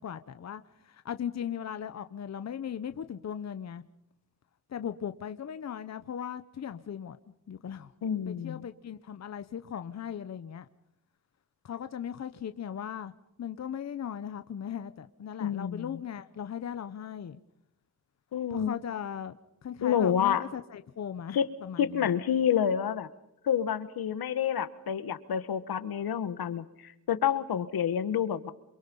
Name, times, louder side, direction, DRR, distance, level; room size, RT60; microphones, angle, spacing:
voice 1, 0.0-3.8 4.7-7.2 7.5-7.9 8.3-10.7 11.6-13.1 13.4-17.4 18.5-22.1, left 8 dB, 45° left, 10 dB, 0.9 m, -38 dB
voice 2, 8.0-8.6 15.4-15.9 18.3-18.7 19.8-20.4 21.3-21.5 21.8-23.1 23.4-28.5, left 9 dB, 75° left, 12 dB, 1.7 m, -28 dB
28.0 x 23.5 x 5.5 m, 0.85 s
wide cardioid pair, 120°, 36 cm